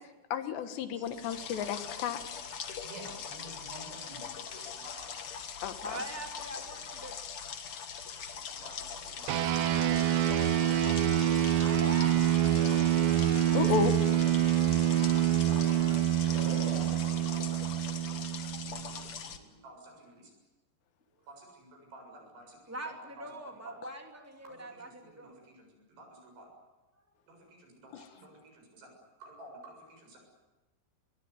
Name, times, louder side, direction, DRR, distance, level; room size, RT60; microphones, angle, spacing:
voice 1, 0.3-2.2 5.6-5.7 13.5-13.9 27.9-28.1, left 8 dB, 80° left, 9 dB, 3.7 m, -32 dB
voice 2, 0.9-1.5 2.6-2.8 5.8-7.1 11.6-12.2 22.7-25.4, right 1 dB, 5° right, 2 dB, 2.3 m, -43 dB
sound 1, 1.0-19.4, left 7 dB, 65° left, 1.4 m, -42 dB
voice 3, 2.8-5.2 8.5-11.7 12.4-12.9 13.3-13.7 15.4-16.0 16.3-18.0 18.4-20.3 21.3-23.3 23.7-23.8 24.4-26.5 27.3-28.9 29.2-30.2, right 2 dB, 75° right, 2 dB, 9.3 m, -50 dB
sound 2, 9.3-19.0, right 12 dB, 90° right, 3.6 m, -26 dB
23.0 x 21.5 x 9.7 m, 1.1 s
omnidirectional pair, 4.9 m